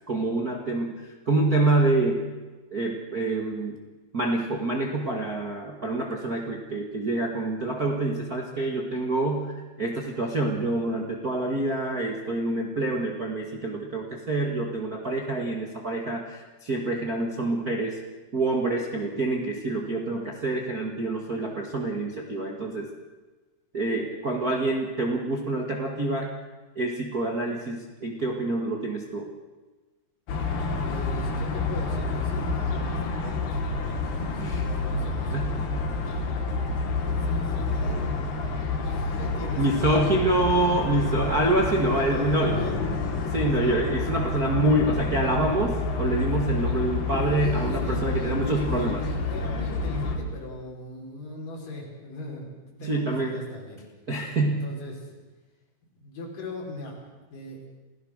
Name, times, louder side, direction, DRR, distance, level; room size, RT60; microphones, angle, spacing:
voice 1, 0.1-2.3 2.7-3.8 4.1-18.0 18.3-22.9 23.7-26.3 26.7-29.3 34.3-34.6 35.3-35.7 39.6-42.6 43.3-49.0 52.8-53.4 54.1-54.7, right 2 dB, 35° right, 0 dB, 1.6 m, -26 dB
sound 1, 30.3-50.2, left 3 dB, 80° left, 4.4 m, -28 dB
voice 2, 30.8-36.5 37.0-38.4 38.8-40.3 40.9-41.1 42.1-42.8 43.2-43.9 47.3-53.8 54.5-55.2 55.9-57.8, left 1 dB, 55° left, -1 dB, 6.6 m, -39 dB
29.0 x 16.5 x 6.6 m, 1.2 s
omnidirectional pair, 4.6 m